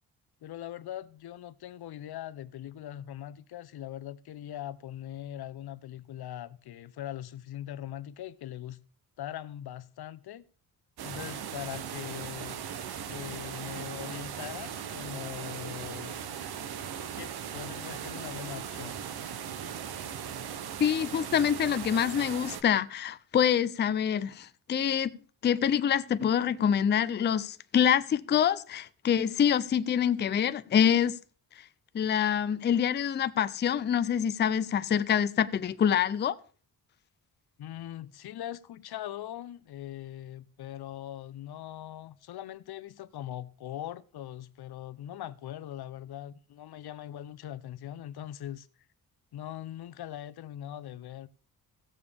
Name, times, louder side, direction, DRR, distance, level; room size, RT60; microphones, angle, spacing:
voice 1, 0.4-8.8 9.2-10.5 11.0-12.6 13.1-16.2 17.2-19.0 37.6-48.7 49.3-51.3, left 12 dB, 85° left, 0.7 m, -41 dB
sound 1, 11.0-22.6, right 8 dB, 80° right, 0.8 m, -38 dB
voice 2, 20.8-25.1 25.4-31.2 31.6-31.7 31.9-36.4, left 8 dB, 30° left, 0.4 m, -26 dB
16.0 x 6.9 x 3.4 m
wide cardioid pair, 155°, 37 cm